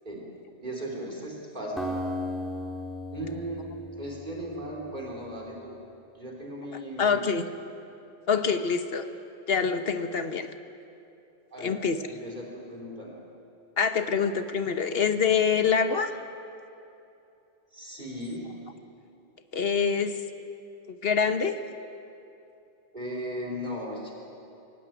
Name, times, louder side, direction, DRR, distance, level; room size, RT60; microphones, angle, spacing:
voice 1, 0.6-1.9 3.1-3.6 4.0-5.8 6.2-7.4 11.5-11.8 12.1-13.2 15.6-15.7 17.7-18.5 22.9-24.1, equal, 50° right, -2 dB, 3.7 m, -37 dB
Acoustic guitar, 1.8-4.9, left 1 dB, ahead, 2.4 m, -35 dB
voice 2, 7.0-7.4 8.3-9.0 9.5-10.5 11.6-12.0 13.8-16.1 19.5-20.1 21.0-21.6, left 6 dB, 70° left, 9 dB, 1.3 m, -25 dB
22.5 x 18.0 x 9.2 m, 2.8 s
omnidirectional pair, 1.0 m